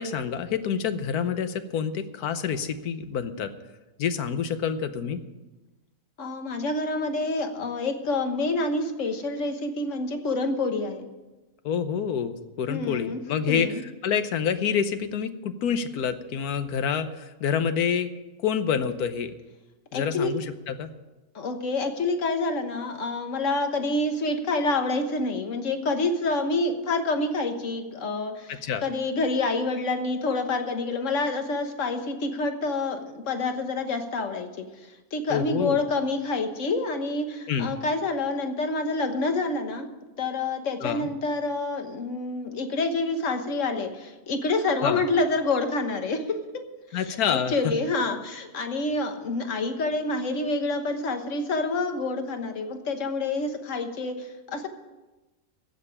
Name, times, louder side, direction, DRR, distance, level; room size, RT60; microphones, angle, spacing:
voice 1, 0.0-3.5 4.0-5.2 11.6-13.7 14.0-18.1 18.4-19.3 19.9-20.9 28.5-28.8 35.3-35.8 37.5-37.7 40.8-41.1 44.8-45.0 46.9-47.7, left 7 dB, 85° left, 10 dB, 1.3 m, -27 dB
voice 2, 6.2-11.1 12.7-13.2 13.5-13.8 19.9-20.3 21.3-34.7 35.1-39.9 40.2-46.6 46.9-54.7, left 3 dB, 55° left, 6 dB, 1.5 m, -27 dB
15.5 x 5.3 x 9.7 m, 1.1 s
omnidirectional pair, 1.6 m